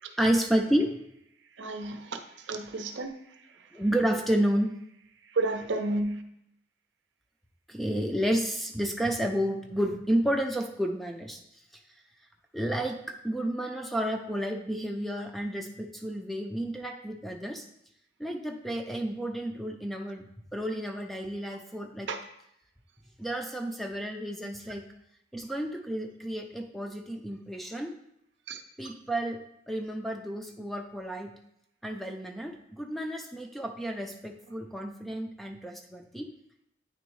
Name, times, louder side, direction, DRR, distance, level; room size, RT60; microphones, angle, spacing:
voice 1, 0.2-1.0 3.7-4.7 7.7-11.4 12.5-17.6 18.2-20.2 20.5-22.1 23.2-24.8 25.3-27.9 28.8-29.4 29.7-31.3 31.8-36.3, right 1 dB, ahead, 3 dB, 0.4 m, -31 dB
voice 2, 1.6-2.2 2.5-3.1 5.3-6.2 22.1-22.2 28.5-28.6, right 2 dB, 75° right, 7 dB, 0.6 m, -31 dB
9.1 x 3.4 x 3.1 m, 0.78 s
head